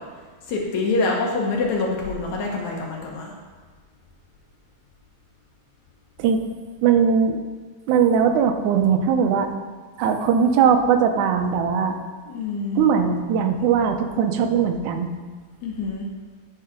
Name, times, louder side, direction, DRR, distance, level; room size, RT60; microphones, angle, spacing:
voice 1, 0.5-3.3 12.3-12.9 15.6-16.1, left 3 dB, 75° left, -1 dB, 2.5 m, -25 dB
voice 2, 6.8-7.4 7.9-9.5 10.0-12.0 12.8-15.1, right 7 dB, 90° right, 6 dB, 2.2 m, -19 dB
10.0 x 5.6 x 5.0 m, 1.4 s
omnidirectional pair, 3.4 m